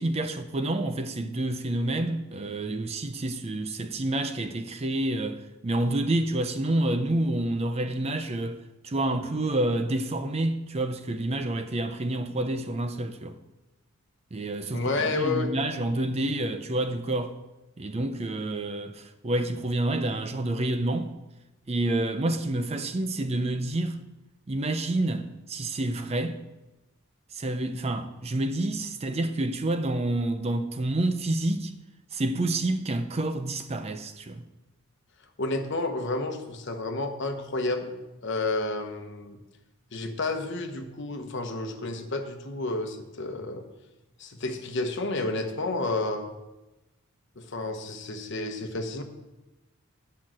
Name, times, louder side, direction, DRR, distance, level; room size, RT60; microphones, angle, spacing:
voice 1, 0.0-8.6 8.8-13.4 14.3-17.4 17.8-21.1 21.7-24.0 24.5-26.4 27.3-31.7 32.1-34.4, right 1 dB, 30° right, 0.5 m, -28 dB
voice 2, 14.7-15.5 35.4-39.4 39.9-43.6 44.2-46.3 47.4-49.0, left 2 dB, 55° left, 1.0 m, -30 dB
8.5 x 5.7 x 7.5 m
head